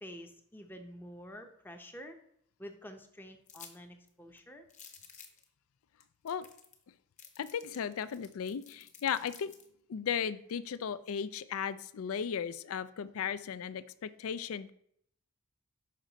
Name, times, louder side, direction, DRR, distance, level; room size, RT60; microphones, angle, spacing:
voice 1, 0.0-2.2 2.6-4.6, equal, 10° left, 5 dB, 0.6 m, -48 dB
sound 1, 3.5-3.8 4.1-4.2 4.7-5.4 6.0-6.1 6.3-6.8 7.2-9.7, left 7 dB, 35° left, 0.9 m, -53 dB
voice 2, 7.4-9.5 9.9-14.7, left 7 dB, 70° left, 15 dB, 0.4 m, -36 dB
6.5 x 5.3 x 3.9 m, 0.70 s
head